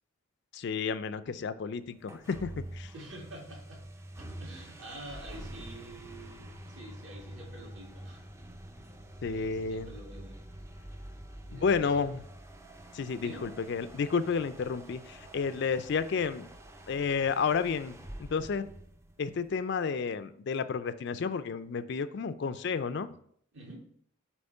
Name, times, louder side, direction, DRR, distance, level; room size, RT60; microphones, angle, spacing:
voice 1, 0.5-2.9 9.2-9.9 11.5-12.2 12.9-16.5 16.9-17.9 18.2-18.7 19.2-23.2, left 5 dB, 55° left, 13 dB, 0.4 m, -31 dB
sound 1, 2.0-19.5, right 1 dB, 15° right, 0.4 m, -47 dB
voice 2, 2.9-3.8 4.2-8.2 9.2-10.4 11.5-12.1 13.2-13.5 23.5-23.9, right 1 dB, 60° right, -2 dB, 2.1 m, -47 dB
7.9 x 3.0 x 5.3 m, 0.64 s
head